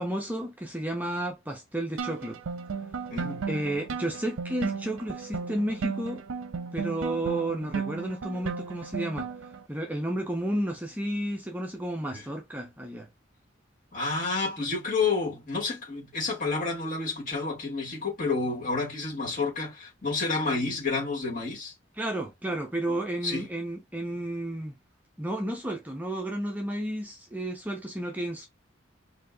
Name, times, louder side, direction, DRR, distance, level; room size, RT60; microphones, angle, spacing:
voice 1, 0.0-2.4 3.5-6.2 6.7-9.3 9.7-13.1 22.0-24.7 25.2-28.5, right 1 dB, 10° right, 0.6 m, -32 dB
sound 1, 2.0-9.6, right 5 dB, 80° right, 0.5 m, -35 dB
voice 2, 3.1-3.5 12.1-12.2 13.9-21.7 23.2-23.4, left 3 dB, 40° left, 2.2 m, -30 dB
4.4 x 2.7 x 2.6 m
head